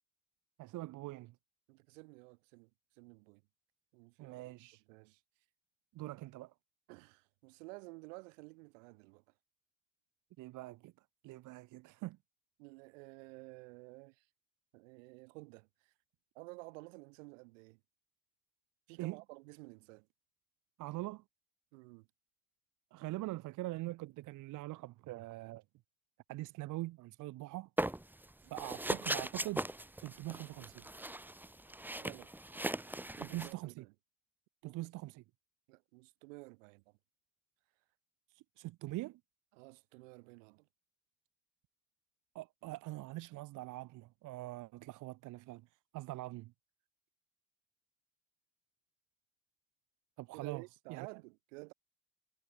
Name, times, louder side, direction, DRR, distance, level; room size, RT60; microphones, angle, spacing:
voice 1, 0.6-1.3 4.2-4.8 5.9-6.5 10.4-10.9 11.2-12.2 19.0-19.2 20.8-21.2 22.9-25.6 26.3-27.7 28.5-29.7 30.0-30.9 33.2-33.8 34.6-35.2 38.3-39.2 42.3-45.7 45.9-46.5 50.2-50.6 50.9-51.1, right 18 dB, 50° right, 1.0 m, -43 dB
voice 2, 1.7-3.4 3.9-4.5 4.9-5.2 6.9-9.2 12.6-14.3 14.7-15.9 16.3-17.8 18.9-20.1 21.7-22.1 32.0-32.3 33.2-33.9 34.6-34.9 35.7-37.0 39.5-40.7 50.3-51.7, right 27 dB, 65° right, 4.9 m, -53 dB
sound 1, 27.8-28.3 28.6-33.5, right 1 dB, 5° right, 1.4 m, -39 dB
figure-of-eight pair, 55°, 40 cm